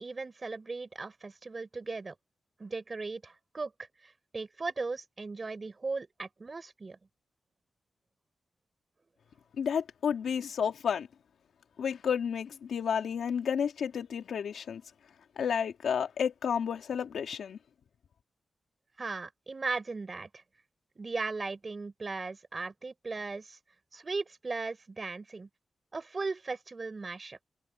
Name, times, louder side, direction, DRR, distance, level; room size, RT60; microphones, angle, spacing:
voice 1, 0.0-2.1 2.6-7.0 19.0-20.4 21.0-23.6 23.9-25.5 25.9-27.5, right 3 dB, 30° right, 5.4 m, -37 dB
voice 2, 9.6-11.1 11.8-14.8 15.4-17.6, left 7 dB, 90° left, 2.9 m, -31 dB
wide cardioid pair, 145°, 0 cm